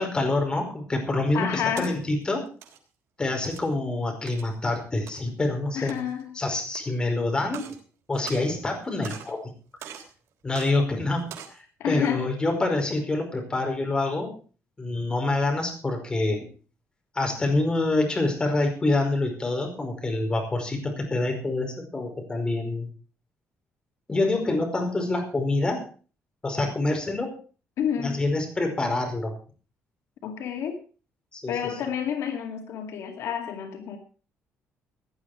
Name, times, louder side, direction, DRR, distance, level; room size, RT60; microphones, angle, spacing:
voice 1, 0.0-2.4 3.2-6.0 6.3-7.7 8.1-9.4 10.4-14.3 14.8-16.5 17.1-22.9 24.1-25.8 26.4-27.3 28.0-29.3 31.3-31.5, left 2 dB, 20° left, 3 dB, 5.0 m, -26 dB
voice 2, 1.3-2.0 5.7-6.4 11.8-12.3 27.8-28.2 30.2-30.8 31.5-34.0, left 8 dB, 70° left, 4 dB, 2.3 m, -29 dB
sound 1, 1.5-1.9 2.5-2.8 3.4-3.7 4.3-4.5 5.1-5.2 5.8-6.2 6.7-6.8 7.4-7.8 8.1-8.8 9.0-9.4 9.8-10.1 10.5-10.7 11.2-11.6, right 9 dB, 85° right, 3.6 m, -42 dB
17.5 x 11.0 x 4.9 m, 0.39 s
cardioid pair, 145°, 5 cm